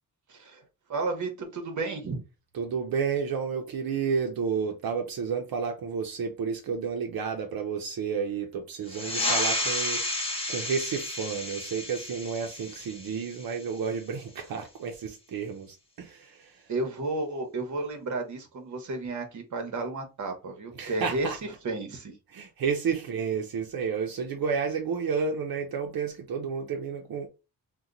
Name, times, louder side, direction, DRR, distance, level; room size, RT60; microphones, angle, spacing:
voice 1, 0.3-0.6 0.9-2.2 16.7-21.3 21.6-22.1, right 3 dB, 55° right, 0.9 m, -32 dB
voice 2, 2.5-16.7 20.7-21.4 22.3-27.3, right 6 dB, 85° right, 0.6 m, -31 dB
sound 1, 8.9-14.0, left 2 dB, 15° left, 0.8 m, -32 dB
2.8 x 2.2 x 3.7 m
wide cardioid pair, 170°, 35 cm